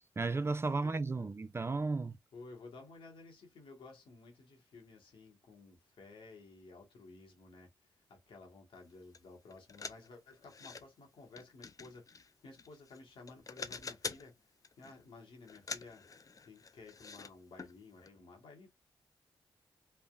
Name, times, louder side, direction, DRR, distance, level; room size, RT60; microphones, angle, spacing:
voice 1, 0.2-2.2, right 3 dB, 30° right, 0.4 m, -34 dB
voice 2, 0.7-1.3 2.3-16.0 16.4-18.7, left 3 dB, 75° left, 1.2 m, -55 dB
sound 1, 9.1-9.2 9.5-10.8 11.4-13.0 13.3-14.3 14.6-15.0 15.5-17.3 17.6-17.7 18.1-18.2, left 5 dB, 40° left, 0.4 m, -46 dB
3.3 x 2.1 x 2.3 m
supercardioid pair, 40°, 9 cm